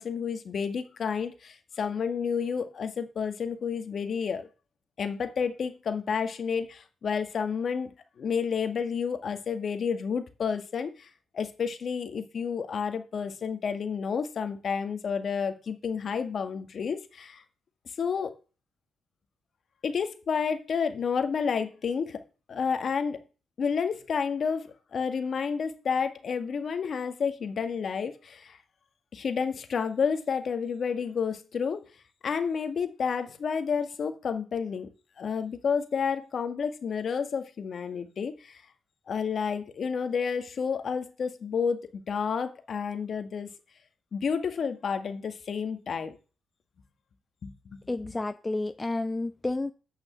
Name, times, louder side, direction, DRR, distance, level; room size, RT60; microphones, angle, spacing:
voice 1, 0.0-4.5 5.0-17.4 18.0-18.3 19.8-22.2 22.5-23.2 23.6-28.6 29.1-31.8 32.2-34.9 35.2-38.6 39.1-43.5 44.1-46.2 47.4-47.8, left 6 dB, 50° left, 1.8 m, -30 dB
voice 2, 47.9-49.7, left 2 dB, 15° left, 0.6 m, -30 dB
8.4 x 6.3 x 7.8 m
cardioid pair, 100°, 0 cm